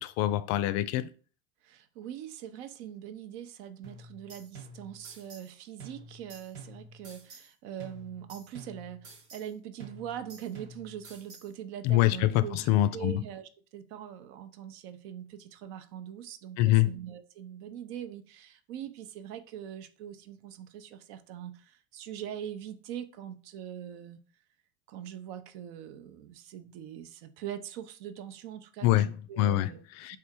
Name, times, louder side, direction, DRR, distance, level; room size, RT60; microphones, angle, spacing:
voice 1, 0.0-1.1 11.8-13.2 16.6-17.0 28.8-29.7 30.0-30.2, left 14 dB, 50° left, 0.4 m, -25 dB
voice 2, 1.6-24.2 24.9-29.8 30.1-30.2, right 10 dB, 70° right, 0.7 m, -42 dB
sound 1, 3.8-5.5 5.8-7.5 7.8-9.5 9.8-11.5, right 3 dB, 85° right, 1.7 m, -49 dB
3.5 x 2.4 x 4.3 m
supercardioid pair, 110°, 33 cm